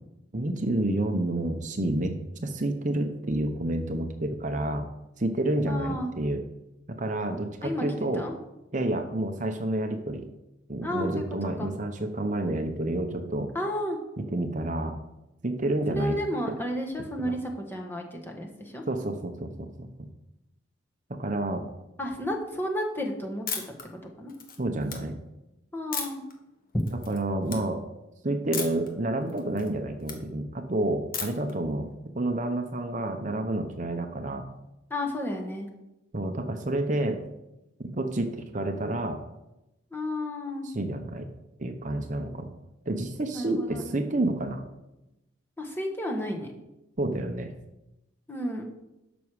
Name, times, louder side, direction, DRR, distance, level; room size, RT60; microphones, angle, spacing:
voice 1, 0.3-2.1 2.4-4.8 5.2-6.4 7.0-8.2 8.7-10.3 10.7-13.5 14.2-14.9 15.4-16.2 16.5-16.6 17.3-17.4 18.9-20.1 21.1-21.6 24.6-25.2 27.1-27.8 28.2-31.9 32.1-34.5 36.1-37.2 37.8-39.2 40.6-41.3 41.6-42.5 42.9-44.6 47.0-47.5, right 1 dB, 40° right, 5 dB, 0.8 m, -29 dB
voice 2, 5.7-6.1 7.6-7.8 8.1-8.3 10.8-11.7 13.5-14.0 15.9-18.8 22.0-23.7 24.2-24.3 25.7-26.2 34.9-35.7 39.9-40.7 43.3-43.8 45.6-46.5 48.3-48.7, left 1 dB, 10° left, 1 dB, 1.3 m, -32 dB
sound 1, 23.5-23.8 24.3-25.0 25.9-26.3 26.8-27.2 27.4-27.6 28.5-28.9 29.3-30.2 31.1-31.5, left 6 dB, 45° left, 1.4 m, -34 dB
12.5 x 6.2 x 4.8 m, 0.93 s
head